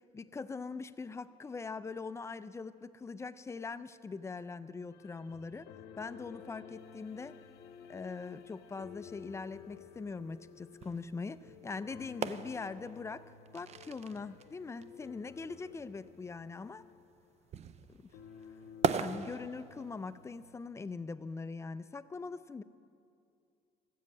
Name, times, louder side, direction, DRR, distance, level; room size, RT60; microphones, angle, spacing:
voice 1, 0.1-5.7 6.0-7.4 7.9-13.3 13.5-16.9 17.9-18.1 18.9-22.6, left 4 dB, 15° left, 14 dB, 0.4 m, -42 dB
sound 1, 4.9-17.8 18.1-20.9, left 7 dB, 80° left, 0.8 m, -54 dB
sound 2, 6.8-20.5, right 7 dB, 40° right, 0.5 m, -42 dB
14.0 x 7.4 x 8.3 m, 2.5 s
cardioid pair, 110°, 17 cm